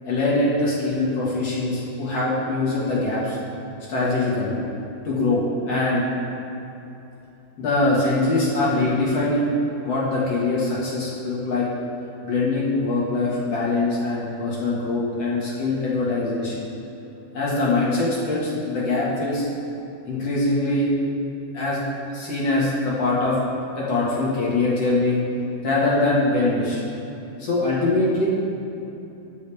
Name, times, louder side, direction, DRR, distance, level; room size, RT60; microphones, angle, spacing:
voice 1, 0.0-3.4 3.9-4.6 5.0-6.1 7.6-9.6 9.8-11.7 12.2-16.7 17.3-19.5 20.1-20.9 21.5-21.8 22.1-23.4 23.8-25.2 25.6-26.8 27.4-28.3, left 2 dB, 50° left, -7 dB, 2.4 m, -23 dB
21.0 x 7.1 x 3.5 m, 2.9 s
omnidirectional pair, 4.8 m